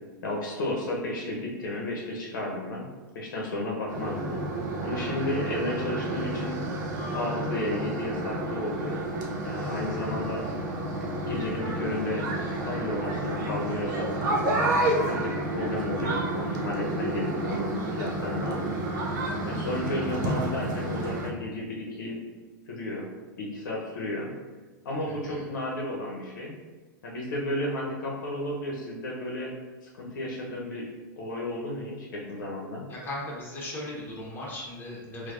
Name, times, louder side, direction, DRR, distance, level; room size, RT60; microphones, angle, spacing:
voice 1, 0.2-2.9 3.1-4.4 4.8-6.6 7.1-9.0 9.4-10.4 11.3-12.2 12.6-14.1 14.8-18.7 19.4-22.2 22.7-23.1 23.4-24.3 24.8-26.5 27.0-29.5 29.8-30.9 31.2-32.8, left 1 dB, 75° left, -2 dB, 0.8 m, -33 dB
sound 1, 3.9-21.3, right 1 dB, 65° right, 0.7 m, -30 dB
voice 2, 25.0-25.5 32.9-35.3, left 1 dB, 20° left, -4 dB, 1.1 m, -38 dB
4.4 x 2.3 x 2.5 m, 1.3 s
hypercardioid pair, 105°, 11 cm